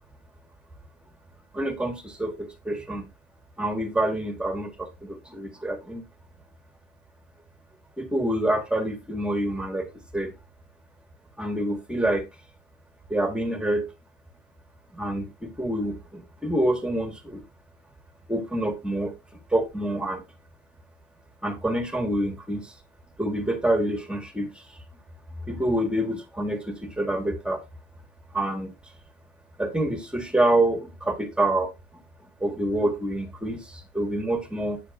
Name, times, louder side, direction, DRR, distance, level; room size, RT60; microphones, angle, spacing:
voice 1, 1.5-3.1 3.6-6.0 8.0-9.9 10.1-10.3 11.4-12.3 13.1-13.9 14.9-17.4 18.3-19.1 19.5-20.2 21.4-22.7 23.2-24.6 25.5-27.6 28.3-28.7 29.6-31.7 32.4-34.8, right 1 dB, 5° right, 1.6 m, -27 dB
8.2 x 6.9 x 2.5 m
cardioid pair, 110°, 17 cm